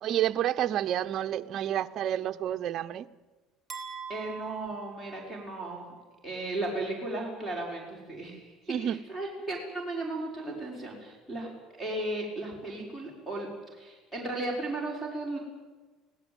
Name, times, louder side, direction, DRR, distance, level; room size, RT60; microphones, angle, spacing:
voice 1, 0.0-3.1 8.7-9.0, right 11 dB, 45° right, 0.8 m, -29 dB
sound 1, 3.7-5.8, right 6 dB, 20° right, 3.7 m, -43 dB
voice 2, 4.1-5.9 6.2-15.4, right 2 dB, 5° left, 6.0 m, -35 dB
24.5 x 17.5 x 9.1 m
cardioid pair, 145°, 0 cm